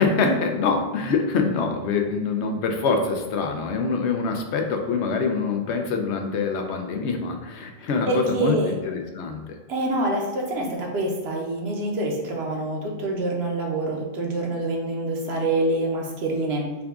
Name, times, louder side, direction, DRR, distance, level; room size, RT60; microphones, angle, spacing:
voice 1, 0.0-9.5, left 4 dB, 90° left, 3 dB, 0.9 m, -25 dB
voice 2, 8.1-8.8 9.7-16.7, right 2 dB, 75° right, 0 dB, 1.0 m, -26 dB
3.8 x 2.3 x 3.5 m, 1.2 s
omnidirectional pair, 1.1 m